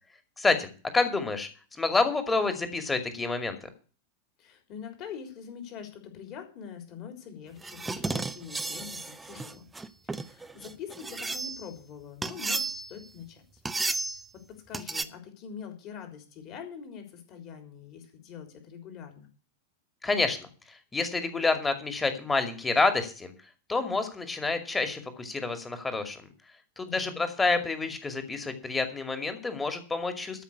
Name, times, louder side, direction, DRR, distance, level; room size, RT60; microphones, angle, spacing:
voice 1, 0.4-0.7 0.9-1.5 1.8-3.6 20.0-23.3 23.7-26.2 26.8-30.4, left 3 dB, 10° left, 8 dB, 2.3 m, -28 dB
voice 2, 4.4-9.7 10.0-13.6 14.3-19.3 26.8-27.2, left 7 dB, 40° left, 6 dB, 3.6 m, -44 dB
sound 1, 7.6-11.7 12.2-13.1 13.6-14.2 14.7-15.0, right 3 dB, 10° right, 0.8 m, -33 dB
13.5 x 5.8 x 8.3 m, 0.38 s
figure-of-eight pair, 90°, 0 cm